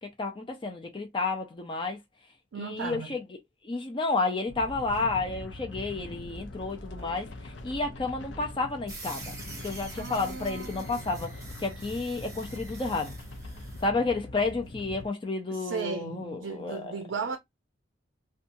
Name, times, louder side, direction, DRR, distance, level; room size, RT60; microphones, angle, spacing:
voice 1, 0.0-2.0 2.6-3.2 3.6-9.3 9.6-13.2 13.8-16.9, left 3 dB, 25° left, 0.5 m, -31 dB
voice 2, 2.5-3.2 10.0-11.0 15.5-17.4, right 5 dB, 80° right, 0.4 m, -36 dB
sound 1, 4.5-15.1, left 1 dB, 70° left, 0.6 m, -42 dB
sound 2, 8.9-13.9, right 2 dB, 15° right, 0.9 m, -46 dB
2.7 x 2.3 x 2.6 m
head